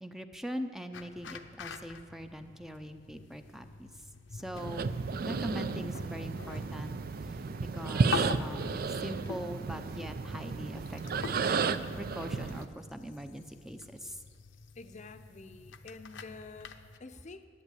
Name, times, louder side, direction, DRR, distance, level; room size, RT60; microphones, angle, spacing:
voice 1, 0.0-3.9 4.3-4.9 5.2-7.0 7.2-14.2, equal, ahead, 7 dB, 0.6 m, -42 dB
sound 1, 0.9-17.0, left 4 dB, 75° left, 0.8 m, -45 dB
sound 2, 4.5-12.6, right 4 dB, 55° right, 0.5 m, -33 dB
voice 2, 14.8-17.5, left 3 dB, 40° left, 10 dB, 0.7 m, -48 dB
11.0 x 9.5 x 8.3 m, 2.1 s
head